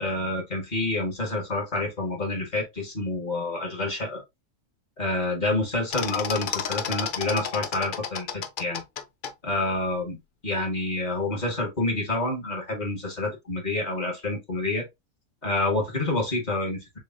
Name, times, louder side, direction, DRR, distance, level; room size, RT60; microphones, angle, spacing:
voice 1, 0.0-4.2 5.0-8.8 9.4-10.2 10.4-14.8 15.4-17.0, left 2 dB, 35° left, 1.4 m, -28 dB
sound 1, 5.9-9.3, left 7 dB, 65° left, 0.5 m, -31 dB
6.3 x 2.4 x 2.4 m
omnidirectional pair, 1.5 m